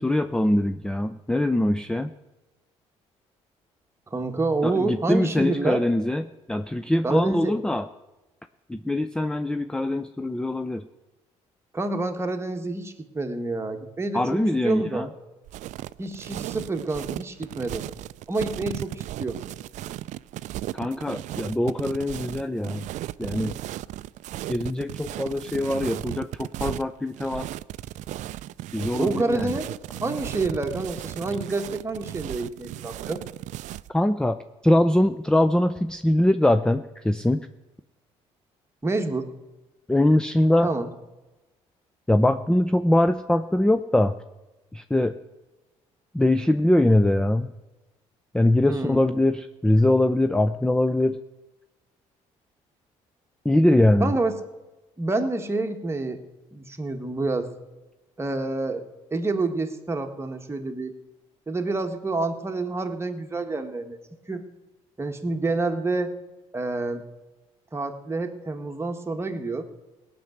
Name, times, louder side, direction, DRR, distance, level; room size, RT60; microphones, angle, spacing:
voice 1, 0.0-2.1 4.6-7.9 8.7-10.8 14.1-15.1 20.7-22.9 23.2-23.6 24.5-27.5 28.7-29.5 33.9-37.4 39.9-40.7 42.1-44.1 44.7-45.2 46.1-47.5 48.3-51.2 53.4-54.1, left 1 dB, 5° left, 10 dB, 0.5 m, -22 dB
voice 2, 4.1-5.8 7.0-7.6 11.7-15.1 16.0-17.9 18.3-19.4 29.0-29.7 30.0-33.2 38.8-39.3 40.6-40.9 48.7-49.0 54.0-54.4 55.0-56.2 56.5-57.5 58.2-58.8 59.1-60.9 61.5-64.0 64.3-64.5 65.0-66.1 66.5-67.0 67.7-69.6, right 3 dB, 20° right, 4 dB, 1.6 m, -28 dB
sound 1, 15.5-33.9, right 14 dB, 65° right, 0.4 m, -35 dB
18.0 x 6.0 x 7.9 m, 1.1 s
supercardioid pair, 75°, 13 cm